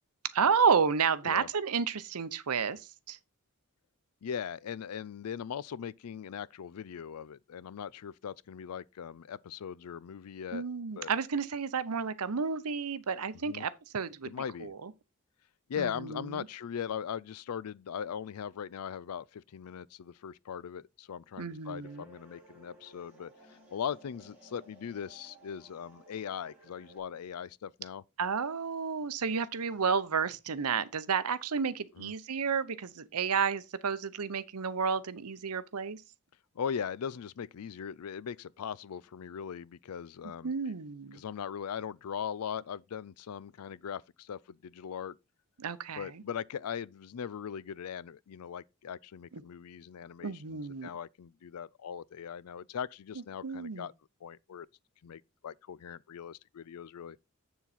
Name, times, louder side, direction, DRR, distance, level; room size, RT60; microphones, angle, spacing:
voice 1, 0.3-3.2 10.5-14.3 14.6-14.9 15.8-16.4 21.4-22.1 28.2-36.0 40.4-41.2 45.6-46.2 49.3-49.4 50.2-50.9 53.4-53.9, right 6 dB, 85° right, 0.8 m, -31 dB
voice 2, 4.2-10.7 11.0-11.1 13.4-13.6 14.2-14.7 15.7-28.0 32.0-32.1 36.6-40.7 41.1-45.2 45.9-53.9 54.2-54.7 55.0-57.2, left 7 dB, 80° left, 0.4 m, -40 dB
sound 1, 21.8-27.0, right 1 dB, 5° right, 4.4 m, -57 dB
7.5 x 7.1 x 4.1 m
head